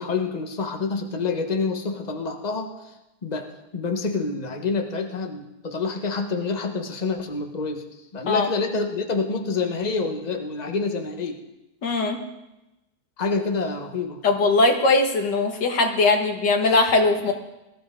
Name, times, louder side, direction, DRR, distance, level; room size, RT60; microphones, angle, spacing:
voice 1, 0.0-2.9 3.2-7.8 8.1-11.4 13.2-14.2, left 4 dB, 25° left, 4 dB, 1.2 m, -27 dB
voice 2, 11.8-12.2 14.2-17.3, left 3 dB, 80° left, 3 dB, 2.3 m, -20 dB
21.0 x 13.0 x 3.7 m, 0.95 s
omnidirectional pair, 1.8 m